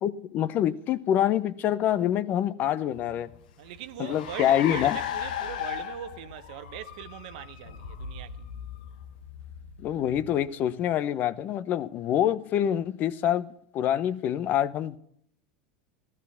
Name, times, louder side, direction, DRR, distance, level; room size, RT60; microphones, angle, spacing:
voice 1, 0.0-3.3 4.0-5.0 9.8-15.0, left 11 dB, 45° left, 0.8 m, -26 dB
Car, 2.9-10.7, left 9 dB, 85° left, 1.3 m, -38 dB
voice 2, 3.6-8.5, right 12 dB, 70° right, 1.0 m, -41 dB
14.5 x 13.0 x 5.7 m
supercardioid pair, 110°, 4 cm